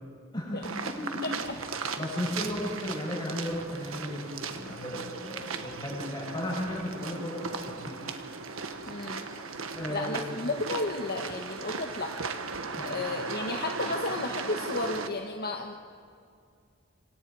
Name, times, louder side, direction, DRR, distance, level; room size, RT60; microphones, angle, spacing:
voice 1, 0.3-1.3 2.0-8.0 9.7-10.4 12.8-13.1, left 1 dB, 20° left, -3 dB, 7.8 m, -35 dB
sound 1, 0.6-15.1, right 4 dB, 80° right, 1.5 m, -37 dB
voice 2, 1.2-1.5 8.8-9.2 9.9-12.1 12.8-15.7, left 2 dB, 50° left, 3 dB, 1.3 m, -33 dB
27.0 x 26.0 x 4.8 m, 2.3 s
head